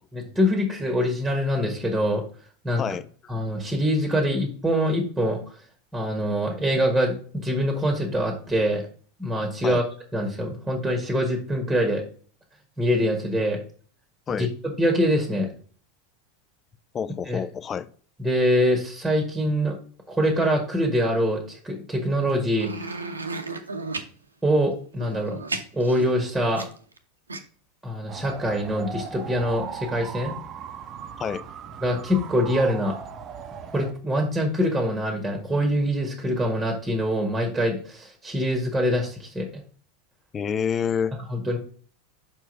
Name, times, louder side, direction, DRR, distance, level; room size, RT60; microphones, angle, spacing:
voice 1, 0.1-2.2 2.6-2.8 3.3-5.5 5.9-8.9 9.2-9.8 10.1-12.0 12.8-13.6 14.3-15.5 17.3-17.4 18.2-19.8 20.1-22.9 24.4-25.4 25.7-26.7 27.8-30.3 31.8-32.9 33.7-39.6 41.3-41.6, equal, 5° right, 1.6 m, -24 dB
voice 2, 16.9-17.9 31.2-31.4 40.3-41.1, left 7 dB, 25° left, 0.4 m, -27 dB
sound 1, 22.6-24.1 24.9-27.0 27.3-27.4, right 3 dB, 80° right, 0.7 m, -33 dB
sound 2, 28.1-33.9, right 7 dB, 35° right, 0.7 m, -38 dB
5.5 x 4.5 x 5.3 m
figure-of-eight pair, 85°, 0 cm